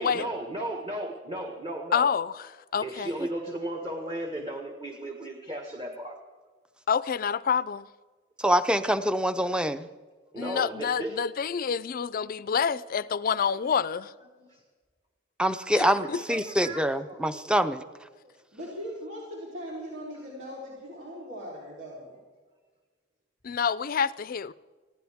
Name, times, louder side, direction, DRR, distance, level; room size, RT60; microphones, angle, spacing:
voice 1, 0.0-2.1 2.8-6.2 10.3-11.2 13.4-13.5 14.4-14.6 16.0-17.5, right 1 dB, 30° right, 1.5 m, -35 dB
voice 2, 1.9-3.1 6.9-7.9 10.4-14.1 15.8-16.2 23.4-24.5, left 6 dB, 50° left, 0.4 m, -28 dB
voice 3, 8.4-9.9 15.4-17.8, equal, 5° right, 0.6 m, -25 dB
voice 4, 18.5-22.2, equal, 75° right, 3.8 m, -39 dB
21.0 x 15.5 x 3.6 m
head